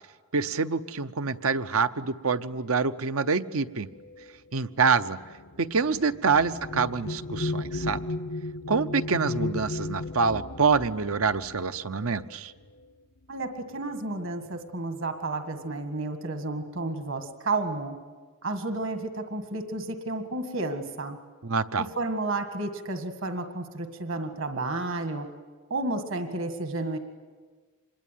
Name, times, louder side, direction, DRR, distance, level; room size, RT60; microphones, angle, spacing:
voice 1, 0.3-3.9 4.5-5.2 5.6-8.0 8.7-12.5 21.4-21.9, right 5 dB, 75° right, 12 dB, 0.8 m, -26 dB
sound 1, 3.9-12.8 13.8-13.9 14.3-14.8, left 2 dB, 60° left, 0.7 m, -35 dB
voice 2, 13.3-18.0 18.4-21.2 22.0-25.3 25.7-27.0, right 2 dB, 60° right, 6 dB, 1.8 m, -31 dB
26.0 x 21.5 x 9.3 m, 1.4 s
head